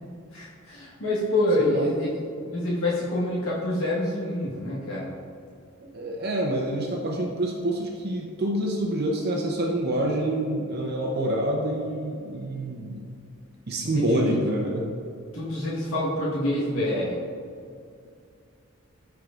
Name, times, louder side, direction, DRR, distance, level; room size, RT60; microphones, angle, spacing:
voice 1, 0.3-2.2 2.4-5.1 13.9-14.4 15.3-17.2, left 1 dB, 65° left, -7 dB, 1.4 m, -26 dB
voice 2, 1.6-1.9 5.9-13.1 13.7-14.9, right 1 dB, 45° right, -1 dB, 0.7 m, -27 dB
14.0 x 4.6 x 2.5 m, 2.4 s
head